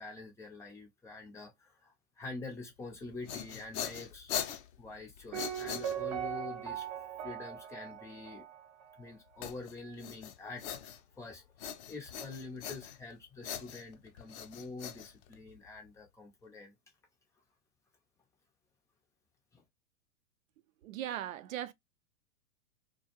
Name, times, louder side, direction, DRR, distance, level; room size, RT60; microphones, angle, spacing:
voice 1, 0.0-4.4 4.8-6.9 7.2-8.4 9.0-11.6 11.9-16.7 19.5-19.6, left 3 dB, 5° left, 0.5 m, -46 dB
sound 1, 3.0-6.4 9.4-11.2 11.6-13.1 13.4-15.7, left 9 dB, 50° left, 0.6 m, -41 dB
Piano, 5.3-9.1 9.4-9.5, right 9 dB, 45° right, 0.8 m, -40 dB
voice 2, 20.8-21.7, right 11 dB, 65° right, 0.5 m, -38 dB
2.3 x 2.1 x 2.8 m
hypercardioid pair, 115°, 44 cm